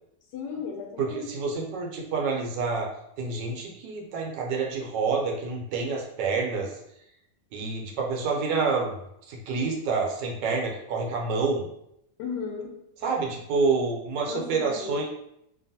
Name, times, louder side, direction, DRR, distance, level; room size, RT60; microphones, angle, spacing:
voice 1, 0.3-1.3 12.2-12.7 14.3-15.0, left 5 dB, 85° left, 2 dB, 1.2 m, -35 dB
voice 2, 1.0-2.9 3.2-6.8 7.5-8.9 9.3-11.7 13.0-15.0, right 4 dB, 80° right, 0 dB, 1.3 m, -28 dB
2.9 x 2.5 x 2.7 m, 0.77 s
omnidirectional pair, 1.8 m